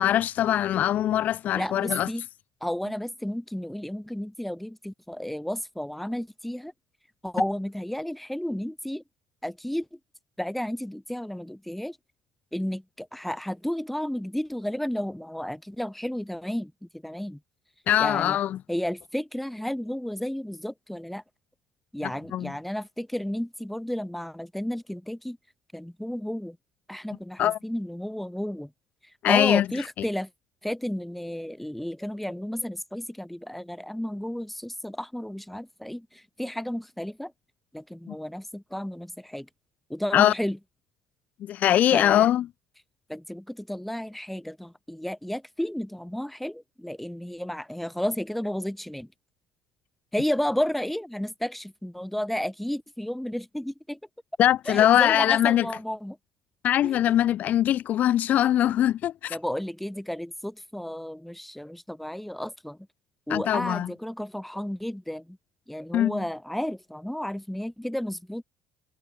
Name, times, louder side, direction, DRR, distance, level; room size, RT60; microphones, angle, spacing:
voice 1, 0.0-2.1 17.9-18.6 22.0-22.5 27.4-27.6 29.2-29.6 38.1-38.2 40.1-40.3 41.4-42.5 54.4-55.7 56.6-59.4 63.3-63.9 65.9-66.2, left 11 dB, 55° left, 2.6 m, -22 dB
voice 2, 1.5-2.3 2.6-6.7 7.2-9.0 9.4-9.9 10.4-12.0 12.5-17.4 18.0-18.4 18.7-21.2 21.9-25.4 25.7-26.6 26.9-28.7 29.3-30.3 30.6-37.3 37.7-39.5 39.9-40.6 41.9-42.3 43.1-49.1 50.1-54.0 54.7-56.2 56.8-57.0 59.3-62.8 63.3-65.4 65.7-68.4, equal, 5° left, 7.2 m, -32 dB
figure-of-eight pair, 55°, 3 cm